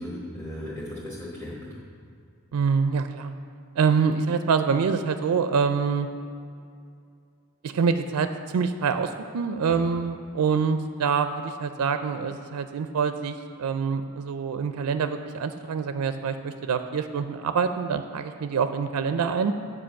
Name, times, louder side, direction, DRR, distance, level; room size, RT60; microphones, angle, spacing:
voice 1, 0.0-1.8 9.7-9.9, left 1 dB, 10° left, -7 dB, 1.1 m, -36 dB
voice 2, 2.5-3.3 3.8-6.1 7.6-13.3 13.6-19.5, right 5 dB, 90° right, 9 dB, 0.4 m, -25 dB
7.6 x 4.8 x 6.9 m, 2.4 s
head